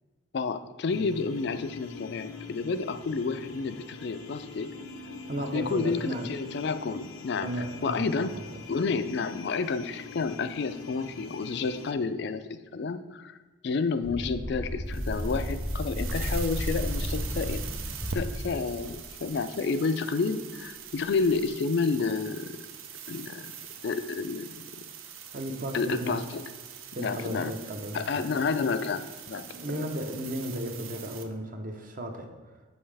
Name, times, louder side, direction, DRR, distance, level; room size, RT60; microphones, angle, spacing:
voice 1, 0.3-4.7 5.5-7.5 7.8-8.3 8.7-12.4 12.7-13.4 13.6-17.6 18.1-22.6 23.1-23.5 23.8-24.6 25.7-26.5 27.0-27.5 27.9-29.5 29.7-29.9, left 4 dB, 55° left, 10 dB, 0.3 m, -30 dB
sound 1, 0.9-11.9, left 3 dB, 85° left, 0.7 m, -44 dB
voice 2, 5.3-6.3 7.4-8.6 25.3-26.2 26.9-28.2 29.5-32.3, equal, 40° right, 4 dB, 0.7 m, -35 dB
sound 2, 14.0-19.0, equal, 5° left, 0.5 m, -33 dB
sound 3, 14.8-31.2, right 7 dB, 80° right, 0.6 m, -43 dB
7.9 x 5.5 x 3.3 m, 1.3 s
head